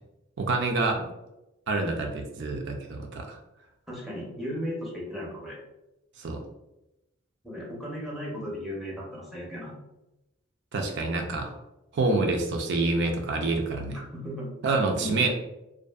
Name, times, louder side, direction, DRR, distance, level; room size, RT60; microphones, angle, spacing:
voice 1, 0.4-1.0 1.7-3.4 6.2-6.4 10.7-11.5 11.9-14.0 14.6-15.3, right 3 dB, 60° right, 3 dB, 0.4 m, -27 dB
voice 2, 3.9-5.6 7.4-9.7 13.9-14.5 15.0-15.3, equal, ahead, -4 dB, 0.6 m, -36 dB
2.5 x 2.4 x 2.2 m, 0.93 s
head